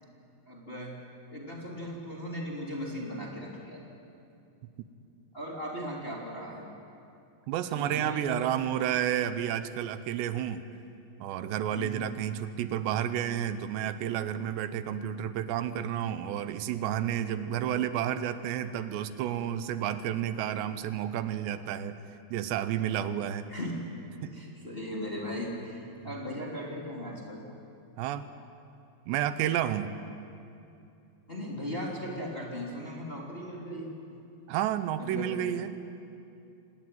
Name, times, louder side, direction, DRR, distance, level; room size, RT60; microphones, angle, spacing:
voice 1, 0.5-1.0 1.3-3.8 5.3-6.6 7.7-8.3 8.8-8.9 11.7-12.1 23.5-23.7 24.2-27.4 31.3-34.2 35.0-35.4, equal, 15° left, -2 dB, 2.6 m, -38 dB
voice 2, 7.5-10.6 11.2-21.9 22.3-23.5 24.2-24.3 26.0-26.1 28.0-28.3 29.1-30.0 34.5-35.8, right 10 dB, 85° right, 11 dB, 3.1 m, -31 dB
26.0 x 19.5 x 9.2 m, 2.6 s
omnidirectional pair, 5.0 m